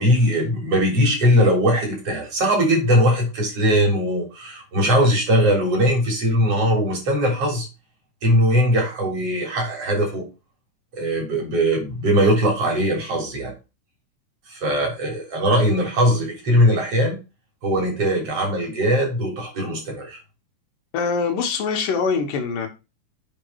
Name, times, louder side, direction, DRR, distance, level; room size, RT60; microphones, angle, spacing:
voice 1, 0.0-7.7 8.2-10.3 10.9-13.5 14.5-17.2 17.6-20.2, equal, 45° right, 4.4 m, -20 dB
voice 2, 20.9-22.7, left 5 dB, 80° left, 3.0 m, -23 dB
8.8 x 5.3 x 4.6 m
omnidirectional pair, 3.8 m